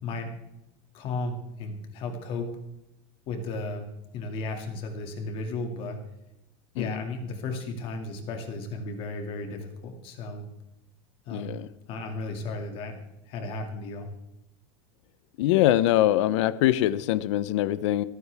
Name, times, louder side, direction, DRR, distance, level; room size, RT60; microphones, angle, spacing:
voice 1, 0.9-2.5 3.3-3.9 4.1-6.0 6.7-10.5 11.3-11.6 11.9-13.0 13.3-14.1, left 3 dB, 35° left, 4 dB, 2.2 m, -34 dB
voice 2, 11.3-11.7 15.4-18.0, left 13 dB, 80° left, 16 dB, 0.7 m, -23 dB
27.5 x 9.3 x 3.5 m, 0.90 s
cardioid pair, 180°, 15 cm